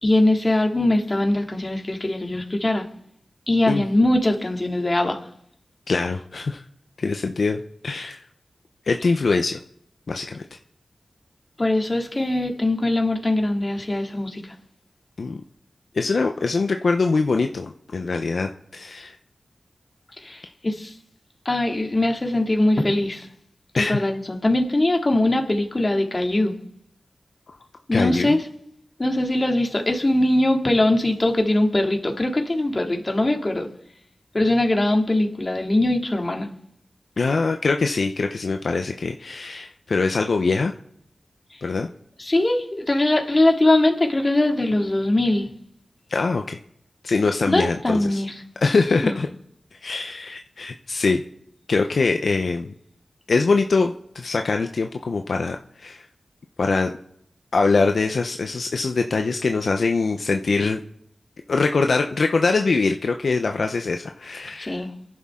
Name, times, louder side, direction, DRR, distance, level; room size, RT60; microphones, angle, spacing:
voice 1, 0.0-2.8 3.5-5.2 11.6-14.5 20.2-20.9 21.4-23.3 23.7-26.5 27.9-28.4 29.0-33.7 34.3-36.5 42.2-45.5 47.5-48.4 49.0-49.2 64.6-64.9, left 1 dB, 35° left, 2 dB, 2.5 m, -21 dB
voice 2, 5.9-6.6 7.0-8.2 8.9-9.6 10.1-10.4 15.2-15.4 15.9-19.1 23.8-24.1 27.9-28.4 37.2-40.7 41.6-41.9 46.1-46.6 47.0-48.2 48.6-49.3 49.8-51.2 51.7-52.7 53.3-56.0 56.6-56.9 57.5-60.8 61.5-64.8, left 4 dB, 75° left, 5 dB, 0.7 m, -23 dB
28.5 x 11.0 x 3.8 m, 0.73 s
wide cardioid pair, 60°, 0 cm